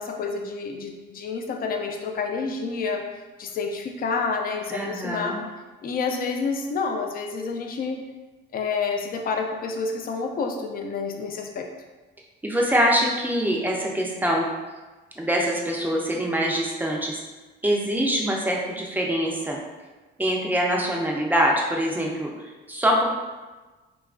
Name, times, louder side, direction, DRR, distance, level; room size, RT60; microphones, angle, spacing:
voice 1, 0.0-3.0 3.4-5.4 5.8-8.0 8.5-11.7, left 4 dB, 45° left, 3 dB, 0.4 m, -29 dB
voice 2, 4.7-5.4 12.4-14.5 15.2-17.2 17.6-19.6 20.2-23.1, equal, 10° right, -2 dB, 0.4 m, -24 dB
2.8 x 2.3 x 2.4 m, 1.2 s
cardioid pair, 90°, 20 cm